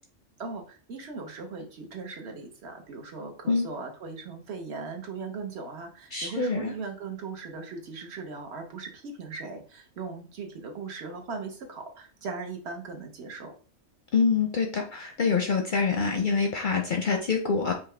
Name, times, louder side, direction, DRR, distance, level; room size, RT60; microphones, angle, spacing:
voice 1, 0.4-13.5, right 4 dB, 60° right, 3 dB, 1.0 m, -38 dB
voice 2, 6.1-6.7 14.1-17.7, left 5 dB, 55° left, 3 dB, 0.6 m, -25 dB
5.2 x 2.2 x 3.2 m, 0.39 s
omnidirectional pair, 1.3 m